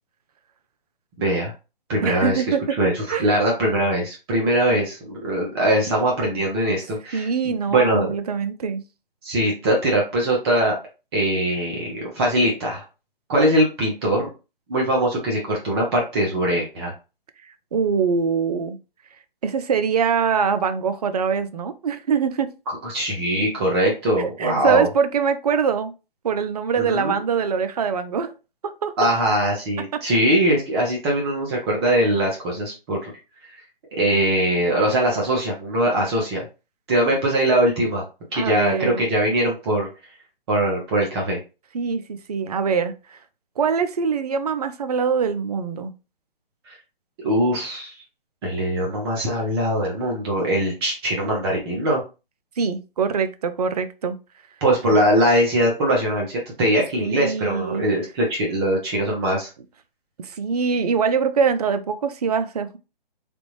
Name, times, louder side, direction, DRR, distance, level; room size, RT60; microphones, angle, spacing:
voice 1, 1.2-1.5 1.9-2.4 2.8-8.1 9.2-10.7 11.1-12.8 13.3-14.3 14.7-16.9 22.8-24.9 26.8-27.2 29.0-33.1 34.0-36.4 36.9-38.0 38.3-39.9 40.5-41.4 46.7-46.8 47.2-47.9 48.4-52.0 54.6-59.5, right 1 dB, 25° right, 0.9 m, -21 dB
voice 2, 2.0-2.7 3.1-3.3 7.1-8.8 17.7-18.8 19.4-22.5 24.2-25.9 26.2-28.3 28.6-28.9 38.3-39.0 41.7-43.2 43.6-45.9 52.6-54.2 57.0-57.9 60.2-62.8, right 6 dB, 45° right, 0.5 m, -23 dB
3.4 x 2.5 x 3.1 m
figure-of-eight pair, 145°, 29 cm